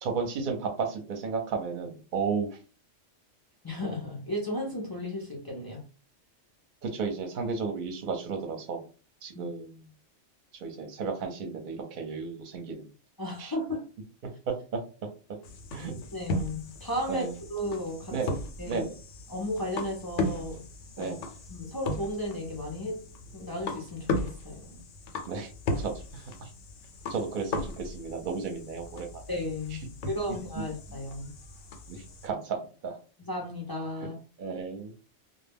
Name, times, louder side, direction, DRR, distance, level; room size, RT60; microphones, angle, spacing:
voice 1, 0.0-2.5 6.8-8.8 9.2-9.8 10.6-12.9 13.4-13.5 15.7-16.0 17.1-17.3 18.1-18.4 18.7-18.9 21.0-21.2 25.3-25.5 25.8-26.2 27.1-29.2 31.9-32.9 34.4-34.9, right 5 dB, 50° right, 0.7 m, -33 dB
voice 2, 3.6-5.8 9.3-9.5 13.2-13.9 16.1-18.1 18.6-18.9 19.3-20.7 21.0-21.2 21.5-23.0 23.3-24.8 29.3-31.3 33.2-34.2, left 1 dB, 35° left, 0.3 m, -34 dB
sound 1, 15.4-32.3, left 2 dB, 90° left, 1.0 m, -37 dB
2.2 x 2.1 x 3.4 m
omnidirectional pair, 1.2 m